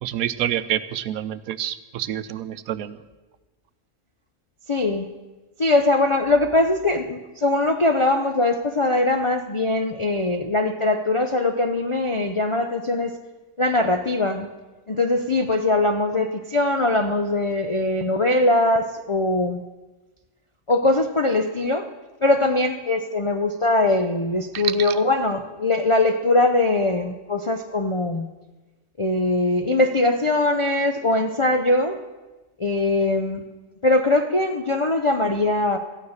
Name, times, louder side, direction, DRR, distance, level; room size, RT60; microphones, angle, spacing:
voice 1, 0.0-3.0 24.5-25.0, right 11 dB, 85° right, 14 dB, 1.1 m, -28 dB
voice 2, 4.7-5.1 5.6-13.2 13.6-14.5 14.9-19.6 20.7-21.9 22.2-28.3 29.0-32.0 32.6-33.4 33.8-35.8, left 2 dB, 55° left, 3 dB, 0.3 m, -21 dB
14.0 x 9.5 x 6.4 m, 1.2 s
omnidirectional pair, 1.5 m